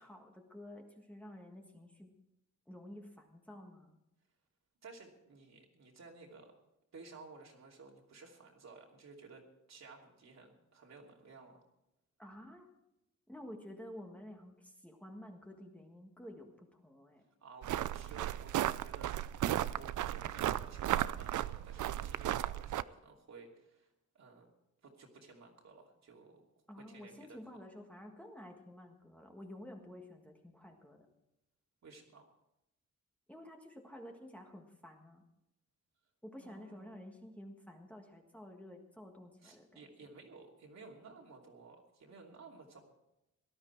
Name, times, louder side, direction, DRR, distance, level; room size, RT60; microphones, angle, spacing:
voice 1, 0.0-2.1 2.7-4.0 12.2-12.7 13.3-17.2 26.7-31.1 33.3-35.2 36.2-39.9, left 1 dB, 5° left, 2 dB, 1.6 m, -51 dB
voice 2, 4.8-6.5 6.9-11.6 17.4-19.4 19.7-24.5 24.8-26.4 26.8-27.4 31.8-32.2 36.4-37.0 39.4-42.8, right 4 dB, 65° right, 0 dB, 2.9 m, -55 dB
sound 1, 17.6-22.8, right 12 dB, 90° right, 0.5 m, -35 dB
18.0 x 12.5 x 4.6 m, 0.88 s
wide cardioid pair, 145°, 29 cm